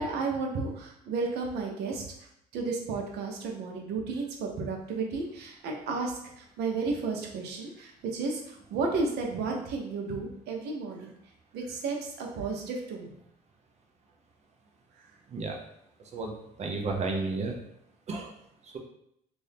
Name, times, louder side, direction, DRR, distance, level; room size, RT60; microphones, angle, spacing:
voice 1, 0.0-2.0 2.5-6.1 6.6-11.1 11.5-13.1, right 4 dB, 75° right, 1 dB, 0.8 m, -32 dB
voice 2, 16.6-17.5 18.1-18.3 18.6-18.8, right 3 dB, 40° right, 2 dB, 0.6 m, -32 dB
2.7 x 2.6 x 3.4 m, 0.74 s
cardioid pair, 110°, 17 cm